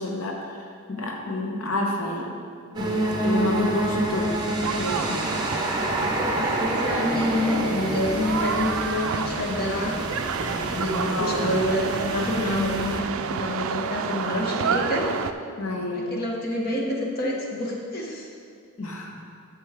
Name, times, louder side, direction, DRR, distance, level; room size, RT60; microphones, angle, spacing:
voice 1, 0.0-2.3 2.7-5.2 11.0-11.5 15.6-16.1 18.8-19.1, left 2 dB, 70° left, 0 dB, 1.0 m, -29 dB
sound 1, 2.7-13.0, right 2 dB, 20° right, 0.8 m, -28 dB
sound 2, 4.6-15.3, right 6 dB, 70° right, 0.3 m, -30 dB
voice 2, 6.1-9.9 10.3-15.1 15.9-18.3, left 1 dB, 45° left, -2 dB, 1.0 m, -27 dB
9.2 x 6.1 x 3.6 m, 2.3 s
head